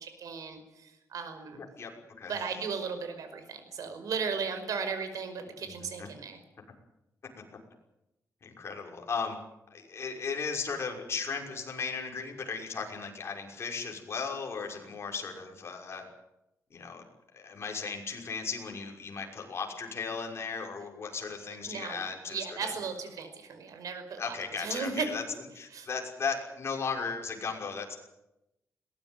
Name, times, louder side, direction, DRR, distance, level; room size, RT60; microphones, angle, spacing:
voice 1, 0.0-1.6 2.3-6.4 21.7-22.0 22.3-25.1 25.7-25.9, right 5 dB, 80° right, 8 dB, 5.3 m, -36 dB
voice 2, 1.5-1.9 2.2-2.3 6.0-6.1 8.4-9.4 9.7-16.0 16.7-17.0 17.3-22.7 24.2-25.2 25.5-28.0, left 5 dB, 45° left, 2 dB, 6.0 m, -36 dB
22.0 x 18.5 x 9.3 m, 0.89 s
wide cardioid pair, 125°, 6 cm